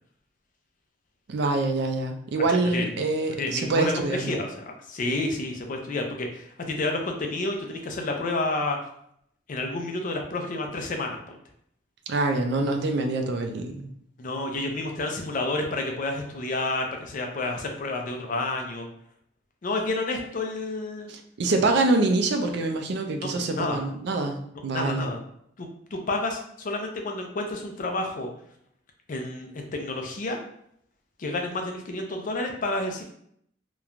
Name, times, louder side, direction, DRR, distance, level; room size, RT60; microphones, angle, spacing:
voice 1, 1.3-4.4 12.1-13.9 21.1-25.1, right 2 dB, 60° right, 4 dB, 0.4 m, -25 dB
voice 2, 3.4-8.8 9.5-11.4 14.2-18.9 19.6-21.1 23.5-23.8 24.7-25.2 25.6-28.3 29.1-30.4 31.2-33.0, left 2 dB, 45° left, 3 dB, 0.4 m, -30 dB
3.0 x 2.1 x 2.4 m, 0.70 s
head